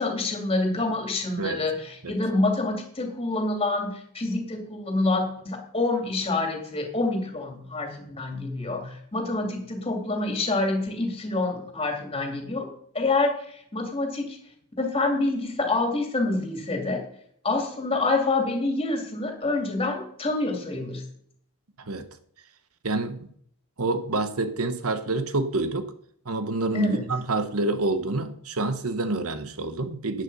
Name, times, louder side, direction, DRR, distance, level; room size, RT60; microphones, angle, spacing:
voice 1, 0.0-12.7 12.9-14.4 14.8-17.0 17.4-21.0 26.7-27.1, left 2 dB, 25° left, 2.6 m, -27 dB
voice 2, 22.8-23.3 23.8-25.9 26.2-30.2, right 2 dB, 80° right, 1.2 m, -27 dB
11.0 x 9.7 x 5.5 m
head